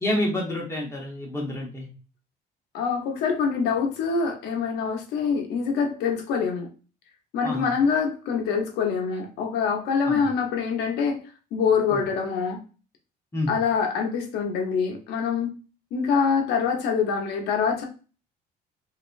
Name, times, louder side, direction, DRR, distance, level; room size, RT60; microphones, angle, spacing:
voice 1, 0.0-1.9 7.4-7.7 10.0-10.2 11.9-12.0 13.3-13.5, left 1 dB, 15° left, -2 dB, 1.3 m, -28 dB
voice 2, 2.7-6.7 7.3-11.2 11.5-12.6 13.5-15.5 15.9-17.9, left 6 dB, 80° left, 2 dB, 0.9 m, -25 dB
3.1 x 2.8 x 2.5 m, 0.34 s
cardioid pair, 110°, 17 cm